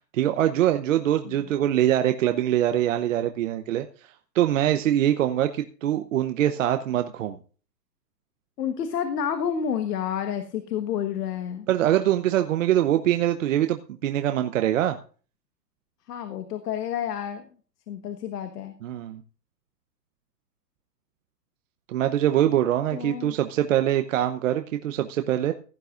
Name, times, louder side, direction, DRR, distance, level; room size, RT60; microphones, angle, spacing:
voice 1, 0.1-7.4 11.7-15.0 18.8-19.2 21.9-25.5, right 12 dB, 50° right, 7 dB, 0.9 m, -23 dB
voice 2, 8.6-11.7 16.1-17.5 17.9-18.7 22.9-23.4, left 8 dB, 70° left, 8 dB, 1.5 m, -29 dB
16.0 x 11.0 x 2.5 m, 0.39 s
hypercardioid pair, 165°, 49 cm